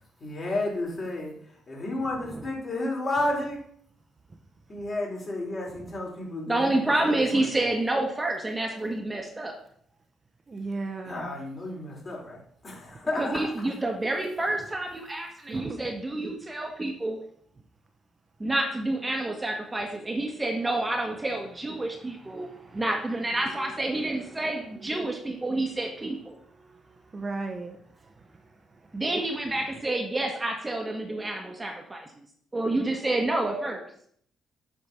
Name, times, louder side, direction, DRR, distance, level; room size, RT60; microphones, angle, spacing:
voice 1, 0.2-1.3 1.7-3.6 4.7-7.5 11.0-13.4, left 2 dB, 40° left, -3 dB, 4.4 m, -32 dB
voice 2, 6.5-9.6 13.2-17.2 18.4-26.3 28.9-32.1 32.5-33.8, right 2 dB, 15° right, 2 dB, 1.4 m, -28 dB
voice 3, 10.5-11.3 15.5-15.8 22.4-22.8 26.6-26.8 27.1-27.8, right 3 dB, 30° right, 5 dB, 1.0 m, -35 dB
8.2 x 5.2 x 6.3 m, 0.63 s
cardioid pair, 90°, 0 cm